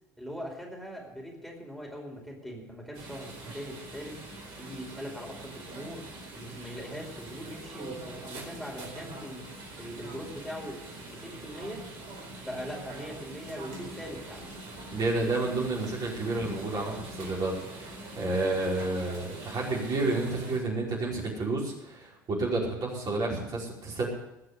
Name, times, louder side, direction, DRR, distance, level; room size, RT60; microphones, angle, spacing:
voice 1, 0.2-6.1 6.3-9.5 9.7-11.8 12.4-14.5, equal, ahead, -1 dB, 4.8 m, -41 dB
Chinatown Fish Market (RT), 2.9-20.6, right 2 dB, 55° right, 4.5 m, -44 dB
voice 2, 14.9-24.1, right 2 dB, 40° right, -3 dB, 5.0 m, -30 dB
19.5 x 6.8 x 8.2 m, 0.90 s
figure-of-eight pair, 70°, 10 cm